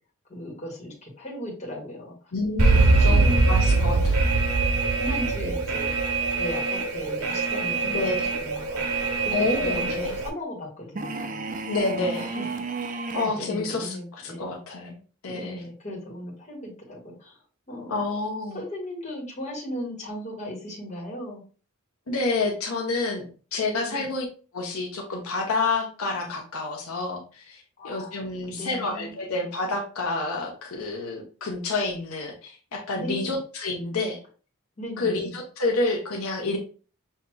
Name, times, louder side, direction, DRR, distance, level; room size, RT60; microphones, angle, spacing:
voice 1, 0.3-2.1 2.7-4.3 5.0-5.9 6.3-8.8 9.2-11.4 12.1-13.0 13.3-14.5 15.2-17.4 17.7-18.0 18.5-21.4 23.9-24.1 27.8-29.2 32.9-33.4 34.8-35.2, equal, 35° left, -3 dB, 1.6 m, -37 dB
voice 2, 2.3-4.2 7.8-8.3 9.3-10.2 11.7-12.4 13.1-14.0 14.2-15.0 15.2-15.6 17.9-18.6 22.1-24.2 24.5-34.2 35.0-36.6, left 3 dB, 85° left, 1 dB, 0.9 m, -29 dB
Alarm, 2.6-10.3, right 3 dB, 85° right, 0.8 m, -23 dB
sound 1, 11.0-13.4, right 4 dB, 35° right, 0.4 m, -33 dB
6.3 x 2.8 x 2.3 m, 0.38 s
head